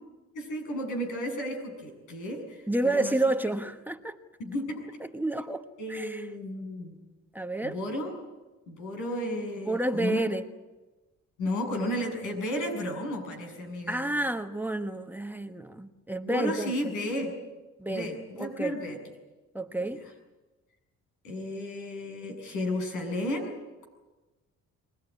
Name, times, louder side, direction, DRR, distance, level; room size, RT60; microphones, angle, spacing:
voice 1, 0.3-2.6 2.9-3.1 4.4-4.6 5.8-6.9 7.6-8.1 8.7-10.2 11.4-14.1 16.3-17.3 17.9-19.0 21.2-23.5, left 1 dB, 85° left, 2 dB, 7.7 m, -33 dB
voice 2, 2.7-4.2 5.0-6.3 7.3-7.8 9.6-10.4 13.9-16.9 17.8-18.8 19.5-20.1, right 2 dB, 5° right, 6 dB, 1.2 m, -30 dB
24.0 x 19.5 x 9.8 m, 1.2 s
cardioid pair, 90°, 30 cm